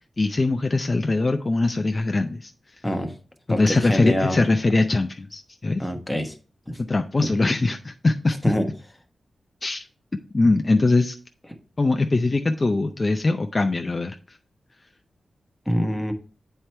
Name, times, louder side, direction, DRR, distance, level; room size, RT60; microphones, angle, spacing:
voice 1, 0.2-2.5 3.5-5.8 6.9-8.4 9.6-9.9 10.3-11.2 11.8-14.2, left 2 dB, 35° left, 5 dB, 0.5 m, -22 dB
voice 2, 3.5-4.4 5.8-6.3 6.7-6.8 7.2-7.3 8.4-8.7 15.7-16.1, equal, 5° left, 4 dB, 1.1 m, -25 dB
8.2 x 4.5 x 3.3 m, 0.37 s
wide cardioid pair, 85°, 0 cm